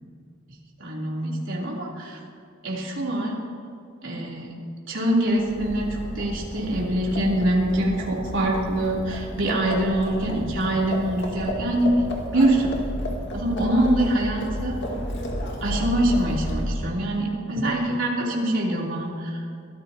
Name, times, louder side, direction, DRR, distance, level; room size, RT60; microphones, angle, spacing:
voice 1, 0.8-2.2 2.6-3.4 4.0-4.5 4.9-11.9 12.3-12.7 13.3-14.8 15.6-19.4, right 1 dB, 70° right, -4 dB, 3.5 m, -24 dB
Livestock farm animals working animals, 5.4-17.0, equal, 65° left, 2.2 m, -32 dB
23.5 x 14.5 x 3.0 m, 2.3 s
head